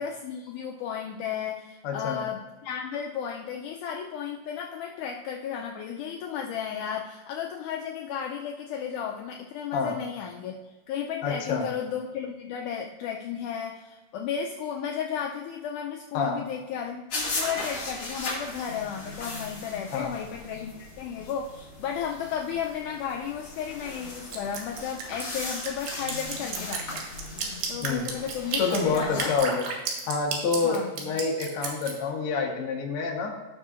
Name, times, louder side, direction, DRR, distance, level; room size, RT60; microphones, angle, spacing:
voice 1, 0.0-27.1 27.7-29.3 30.6-31.2, left 8 dB, 80° left, 1 dB, 1.9 m, -34 dB
voice 2, 1.8-2.2 9.7-10.0 11.2-11.7 16.1-16.4 19.9-20.1 27.8-28.1 28.6-29.7 30.1-33.3, left 4 dB, 60° left, 0 dB, 1.6 m, -27 dB
sound 1, 17.1-29.4, left 2 dB, 40° left, 2.6 m, -38 dB
Drip, 24.3-31.9, right 5 dB, 85° right, 2.8 m, -32 dB
13.5 x 6.4 x 2.5 m, 1.2 s
omnidirectional pair, 3.9 m